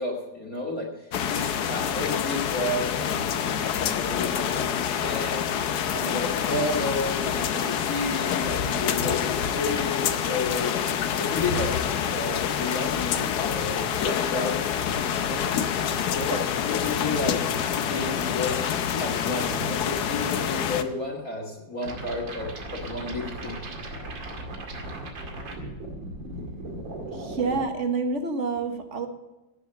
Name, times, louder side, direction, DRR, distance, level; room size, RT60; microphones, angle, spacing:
voice 1, 0.0-10.7 11.2-11.7 12.1-14.7 15.3-17.4 17.8-18.6 19.0-23.6, left 2 dB, 50° left, -3 dB, 2.7 m, -32 dB
sound 1, 1.1-20.8, left 8 dB, 65° left, 1.3 m, -27 dB
sound 2, 21.8-27.7, right 1 dB, 85° right, 2.9 m, -37 dB
voice 2, 27.1-29.1, right 4 dB, 40° right, 7 dB, 1.6 m, -28 dB
17.0 x 7.4 x 6.7 m, 1.1 s
omnidirectional pair, 2.0 m